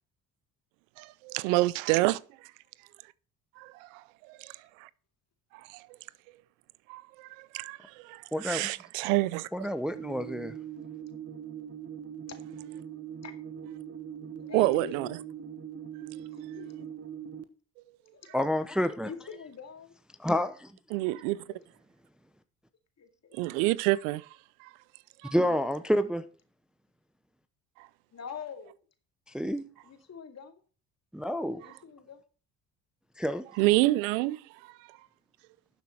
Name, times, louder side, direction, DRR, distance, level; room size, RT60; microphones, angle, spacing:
voice 1, 1.0-2.2 3.6-4.9 5.7-5.9 6.9-9.7 14.5-15.2 20.9-21.4 23.3-24.3 24.6-24.7 25.2-25.3 27.8-27.9 33.6-34.7, right 19 dB, 85° right, 0.6 m, -28 dB
voice 2, 8.3-8.7 9.5-10.5 18.3-19.1 20.2-20.7 25.3-26.2 29.3-29.6 31.1-31.6 33.2-33.4, equal, ahead, 0.7 m, -29 dB
sound 1, 9.9-17.4, right 9 dB, 40° right, 1.3 m, -41 dB
voice 3, 14.4-15.2 16.3-17.0 18.1-18.4 19.0-19.9 21.5-21.6 23.0-23.4 25.3-25.4 28.1-28.8 29.8-30.6 31.4-32.2 33.7-34.0, left 6 dB, 45° left, 2.4 m, -45 dB
12.0 x 7.1 x 4.5 m
supercardioid pair, 70°, 38 cm